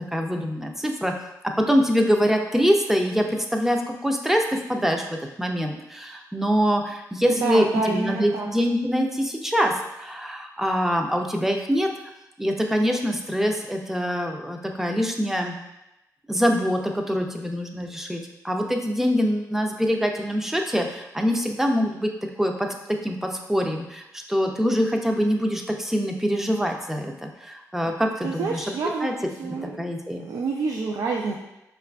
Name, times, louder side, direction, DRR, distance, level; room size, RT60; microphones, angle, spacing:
voice 1, 0.1-1.1 1.7-11.9 12.4-15.6 16.3-22.1 22.4-28.6 29.0-29.1 29.4-30.2, equal, 5° right, 2 dB, 0.4 m, -24 dB
voice 2, 7.4-8.5 28.2-29.1 29.4-29.8 30.2-31.3, right 4 dB, 70° right, -1 dB, 0.4 m, -27 dB
4.7 x 2.4 x 2.2 m, 0.92 s
cardioid pair, 80°, 7 cm